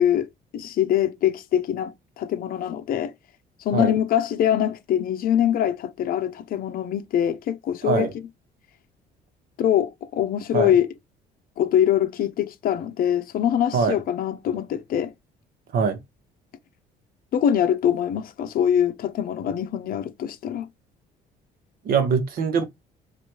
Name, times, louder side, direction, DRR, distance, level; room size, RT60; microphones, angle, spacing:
voice 1, 0.0-3.1 3.6-8.1 9.6-10.9 11.6-15.1 17.3-20.7, left 10 dB, 60° left, 0.6 m, -23 dB
voice 2, 7.8-8.1 10.5-10.7 13.7-14.0 15.7-16.0 21.8-22.6, right 5 dB, 60° right, 1.1 m, -22 dB
3.2 x 2.5 x 4.4 m
cardioid pair, 110°, 17 cm